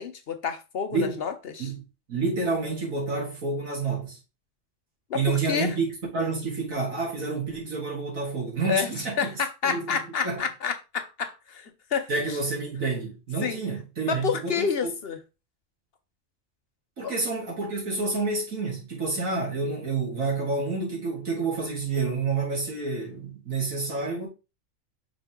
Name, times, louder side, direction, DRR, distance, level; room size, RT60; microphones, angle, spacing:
voice 1, 0.0-1.7 5.1-5.8 8.6-12.4 13.4-13.6 14.1-15.2 17.0-17.1, left 6 dB, 55° left, 0.8 m, -29 dB
voice 2, 2.1-4.2 5.1-9.2 9.6-10.0 10.2-10.4 12.1-14.9 17.0-24.3, right 3 dB, 90° right, 3.1 m, -29 dB
5.9 x 4.4 x 3.6 m
omnidirectional pair, 1.4 m